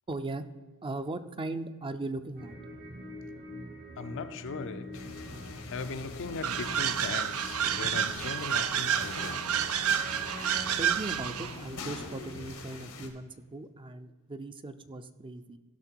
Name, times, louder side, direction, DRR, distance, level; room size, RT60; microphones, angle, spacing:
voice 1, 0.1-0.4 0.8-2.5 10.8-15.6, right 2 dB, 25° right, 0.5 m, -38 dB
sound 1, 2.4-11.0, equal, 50° right, 1.1 m, -45 dB
voice 2, 4.0-5.2 5.7-9.5, left 4 dB, 60° left, 0.5 m, -39 dB
sound 2, 4.9-13.1, left 3 dB, 90° left, 1.5 m, -43 dB
sound 3, 6.4-11.6, right 9 dB, 85° right, 0.5 m, -30 dB
15.5 x 5.9 x 4.6 m
head